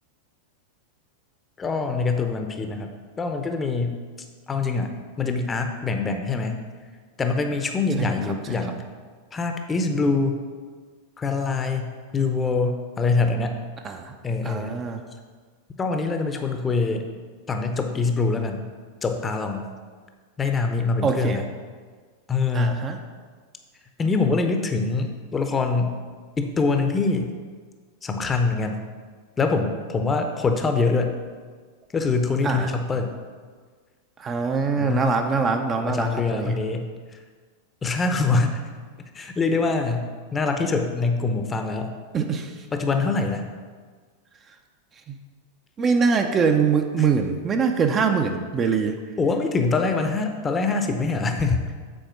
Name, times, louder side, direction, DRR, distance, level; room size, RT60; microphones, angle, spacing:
voice 1, 1.6-2.9 3.2-4.0 4.5-4.9 5.2-6.6 7.2-8.8 9.3-10.3 11.2-13.6 14.2-14.7 15.8-17.0 17.5-18.6 19.0-19.7 20.4-21.4 22.3-22.8 24.0-26.0 26.4-27.3 28.0-28.8 29.4-31.2 31.9-33.1 34.8-35.2 35.8-36.9 37.8-38.6 39.1-41.9 42.7-43.5 49.2-51.6, left 4 dB, 20° left, 5 dB, 0.7 m, -24 dB
voice 2, 13.8-14.2 14.4-15.0 21.0-21.4 22.5-23.0 32.4-32.7 34.2-36.6 42.1-42.7 45.1-45.2 45.8-49.0, right 5 dB, 25° right, 5 dB, 0.6 m, -23 dB
7.8 x 4.3 x 6.1 m, 1.6 s
figure-of-eight pair, 90°, 0 cm